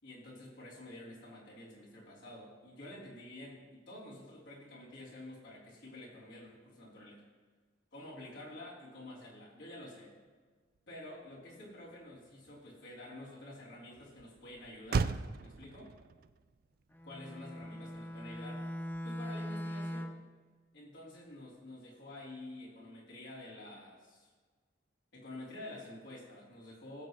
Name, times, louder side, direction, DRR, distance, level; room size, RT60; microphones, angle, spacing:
voice 1, 0.0-7.2 7.9-10.1 10.9-15.9 17.0-18.7 19.0-20.1 20.7-24.3 25.1-27.1, left 1 dB, 80° left, -7 dB, 3.9 m, -49 dB
Motor vehicle (road), 10.7-19.5, right 4 dB, 50° right, 0.3 m, -41 dB
Bowed string instrument, 16.9-20.3, equal, 10° left, 0.4 m, -41 dB
20.0 x 7.9 x 3.3 m, 1.5 s
head